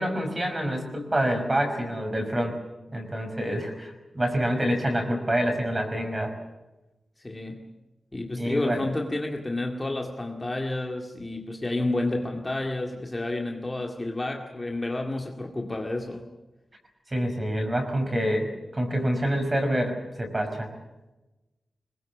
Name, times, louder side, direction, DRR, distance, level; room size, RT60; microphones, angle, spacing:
voice 1, 0.0-2.6 2.9-6.3 8.4-8.9 17.1-20.7, equal, 20° right, 5 dB, 5.5 m, -27 dB
voice 2, 7.2-7.6 8.1-16.3, left 2 dB, 20° left, 1 dB, 2.1 m, -30 dB
25.5 x 22.0 x 7.3 m, 1.0 s
wide cardioid pair, 170°, 0 cm